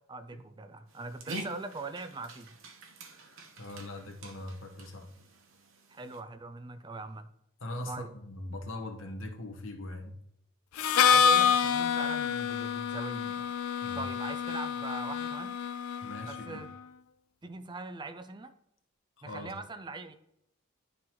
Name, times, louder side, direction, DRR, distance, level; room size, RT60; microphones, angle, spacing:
voice 1, 0.1-2.6 5.9-7.3 7.9-8.1 11.0-13.5 14.0-15.6 16.3-16.7 17.4-18.5 19.2-20.1, right 3 dB, 20° right, 9 dB, 0.4 m, -41 dB
Dog, 0.9-6.2, right 2 dB, 65° right, 1.0 m, -46 dB
voice 2, 3.6-5.1 7.6-10.2 13.8-14.0 16.0-16.6 19.2-19.5, left 1 dB, 65° left, 3 dB, 1.1 m, -41 dB
Harmonica, 10.8-16.5, left 7 dB, 90° left, 0.4 m, -27 dB
11.5 x 3.8 x 2.9 m, 0.77 s
head